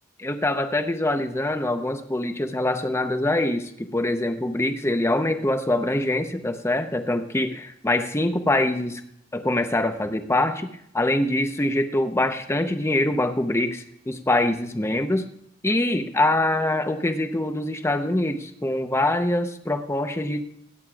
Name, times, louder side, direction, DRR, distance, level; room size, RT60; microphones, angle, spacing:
voice 1, 0.2-9.0 9.3-15.3 15.6-20.4, left 1 dB, 15° left, 7 dB, 0.7 m, -24 dB
24.0 x 9.3 x 2.4 m, 0.73 s
head